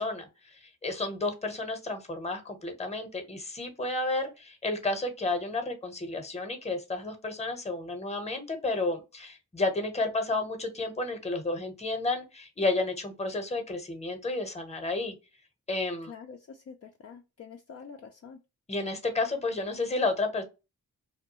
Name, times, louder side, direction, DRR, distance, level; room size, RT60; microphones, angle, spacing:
voice 1, 0.0-15.2 15.7-16.1 18.7-20.4, left 2 dB, 20° left, 0.8 m, -31 dB
voice 2, 16.1-18.4, left 6 dB, 40° left, 0.4 m, -46 dB
2.2 x 2.1 x 2.8 m
cardioid pair, 50°, 36 cm